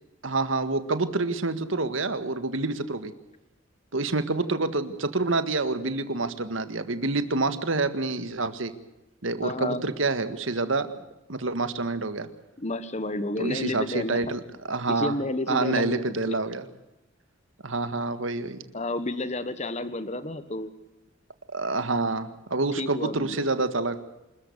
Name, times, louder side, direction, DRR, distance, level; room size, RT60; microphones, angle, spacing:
voice 1, 0.2-3.1 3.9-8.7 9.2-10.9 11.3-12.3 13.4-15.1 15.5-16.6 17.6-18.6 21.5-24.0, right 3 dB, 80° right, 11 dB, 1.8 m, -27 dB
voice 2, 9.4-9.8 12.6-14.2 14.9-16.5 18.7-20.7 22.8-23.5, left 2 dB, 35° left, 12 dB, 1.4 m, -31 dB
27.0 x 14.0 x 8.0 m, 0.97 s
head